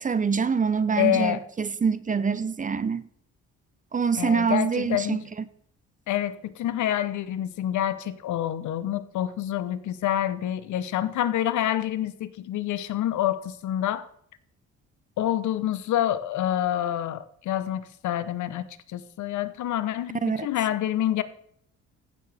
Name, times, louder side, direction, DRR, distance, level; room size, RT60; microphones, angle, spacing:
voice 1, 0.0-3.0 3.9-5.2 20.2-20.5, right 5 dB, 25° right, 0.6 m, -25 dB
voice 2, 1.0-1.4 4.2-5.2 6.1-14.1 15.2-21.2, left 12 dB, 75° left, 0.8 m, -27 dB
15.5 x 6.9 x 3.4 m
cardioid pair, 90°, 30 cm